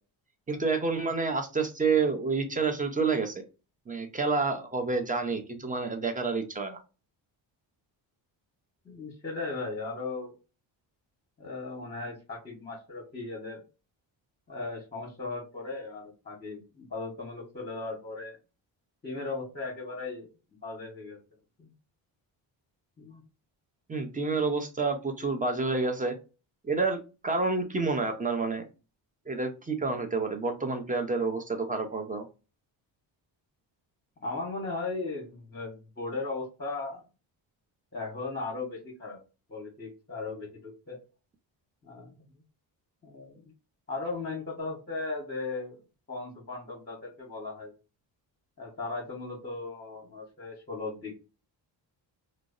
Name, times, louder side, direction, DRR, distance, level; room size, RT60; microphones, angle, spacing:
voice 1, 0.5-3.4 3.9-6.8 23.9-26.1 26.6-28.7 29.3-32.3, right 4 dB, 20° right, 6 dB, 0.5 m, -29 dB
voice 2, 8.8-10.3 11.4-13.6 14.5-18.4 19.0-20.3 20.6-21.2 21.6-21.7 23.0-23.2 34.2-37.0 37.9-39.2 39.5-41.0 41.8-42.1 43.0-43.4 43.9-45.8 46.1-47.7 48.6-51.2, left 3 dB, 20° left, -1 dB, 0.9 m, -37 dB
2.5 x 2.0 x 2.4 m, 0.31 s
cardioid pair, 75°, 47 cm